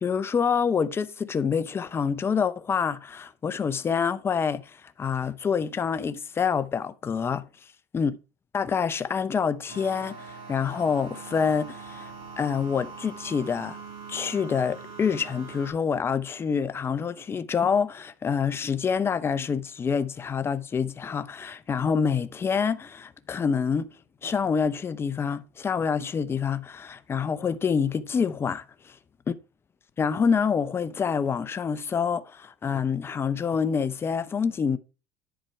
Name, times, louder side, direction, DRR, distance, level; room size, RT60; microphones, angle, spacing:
voice 1, 0.0-7.5 7.9-8.2 8.5-12.1 12.4-13.8 14.1-23.9 24.2-28.9 30.0-34.8, left 6 dB, 25° left, 0.7 m, -27 dB
sound 1, 9.7-15.7, right 4 dB, 70° right, 3.2 m, -42 dB
10.5 x 4.5 x 4.5 m
supercardioid pair, 105°, 10 cm